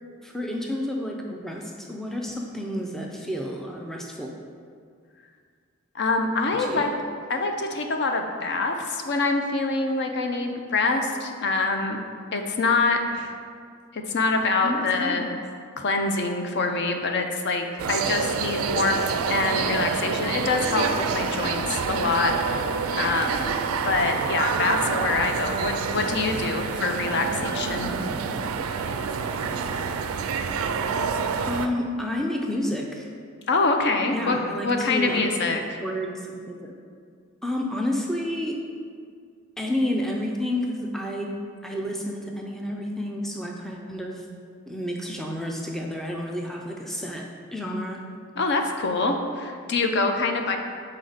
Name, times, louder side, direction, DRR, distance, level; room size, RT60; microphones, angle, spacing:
voice 1, 0.2-4.3 6.5-7.0 8.4-8.6 14.6-15.4 31.5-33.1 34.0-35.3 35.8-36.8 37.4-38.7 39.6-44.4 44.7-48.1, left 1 dB, ahead, 0 dB, 0.4 m, -30 dB
voice 2, 5.9-6.9 7.3-12.0 12.3-13.3 13.9-15.4 15.8-23.5 23.8-27.9 33.5-34.4 34.6-35.8 48.4-50.6, left 3 dB, 55° left, 4 dB, 0.5 m, -25 dB
sound 1, 17.8-31.7, right 5 dB, 75° right, 0.3 m, -27 dB
6.3 x 4.2 x 4.0 m, 2.1 s
head